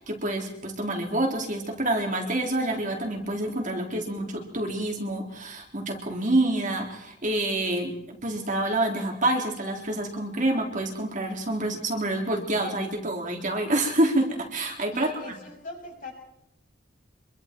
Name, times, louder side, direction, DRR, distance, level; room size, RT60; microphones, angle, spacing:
voice 1, 0.0-8.0 8.2-15.1, right 1 dB, 40° right, 1 dB, 3.7 m, -27 dB
voice 2, 14.9-16.1, left 1 dB, 45° left, 0 dB, 7.4 m, -40 dB
26.0 x 24.0 x 4.6 m, 0.83 s
head